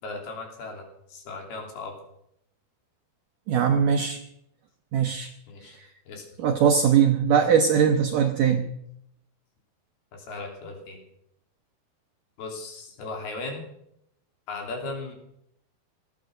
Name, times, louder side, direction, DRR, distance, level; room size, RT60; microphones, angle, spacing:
voice 1, 0.0-1.9 5.5-5.8 6.1-6.3 10.1-11.0 12.4-13.6 14.5-15.2, left 3 dB, 65° left, 2 dB, 4.8 m, -37 dB
voice 2, 3.5-4.2 4.9-5.3 5.8-5.9 6.4-8.7, right 7 dB, 75° right, 5 dB, 2.0 m, -21 dB
18.0 x 12.0 x 6.5 m, 0.77 s
omnidirectional pair, 5.0 m